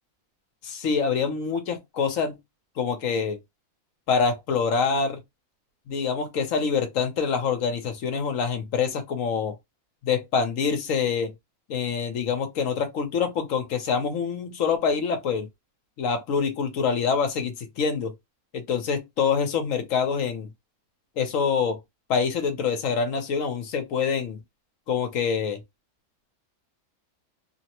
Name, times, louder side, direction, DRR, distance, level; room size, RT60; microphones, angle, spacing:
voice 1, 0.6-2.4 2.8-3.4 4.1-5.2 5.9-9.6 10.0-11.3 11.7-15.5 16.0-18.1 18.5-20.5 21.2-21.8 22.1-24.4 24.9-25.6, left 6 dB, 65° left, 1.1 m, -25 dB
3.2 x 2.1 x 2.9 m
omnidirectional pair, 1.6 m